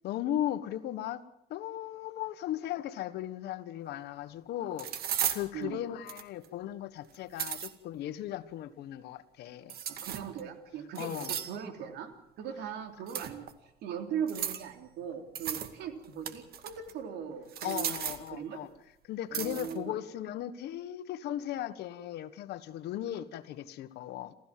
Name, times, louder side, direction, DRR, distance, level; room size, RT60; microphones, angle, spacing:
voice 1, 0.0-1.2 1.5-4.9 5.3-9.7 11.0-11.4 17.6-18.7 19.1-24.3, left 12 dB, 75° left, 1.5 m, -37 dB
sound 1, 3.9-4.0 4.8-5.4 6.1-6.4 7.1-7.7 9.7-10.4 10.9-11.6 13.1-13.5 14.3-14.7 15.3-15.7 16.0-16.9 17.5-18.3 19.3-19.8, right 9 dB, 65° right, 2.2 m, -35 dB
voice 2, 9.9-12.1 12.4-13.5 13.8-18.0 18.3-18.6 19.3-20.0, right 8 dB, 80° right, 3.4 m, -39 dB
28.0 x 15.0 x 7.6 m
cardioid pair, 110°, 17 cm